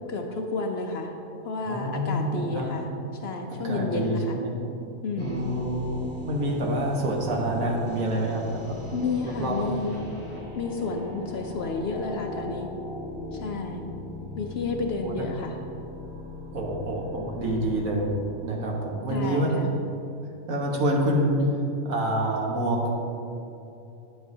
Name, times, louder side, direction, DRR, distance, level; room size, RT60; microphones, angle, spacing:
voice 1, 0.1-1.1 1.4-2.9 3.2-4.4 5.0-5.5 8.9-10.1 10.5-12.7 13.3-13.9 14.3-15.6 19.1-19.8, left 3 dB, 60° left, 3 dB, 0.7 m, -31 dB
voice 2, 1.6-2.7 3.5-4.6 5.2-8.8 9.2-9.9 15.0-15.3 16.5-18.1 18.4-19.5 20.5-21.5 21.8-22.8, right 1 dB, 80° right, -1 dB, 1.6 m, -27 dB
sound 1, 5.2-19.3, left 2 dB, 10° left, 1.6 m, -39 dB
9.5 x 8.0 x 2.7 m, 2.8 s
omnidirectional pair, 1.4 m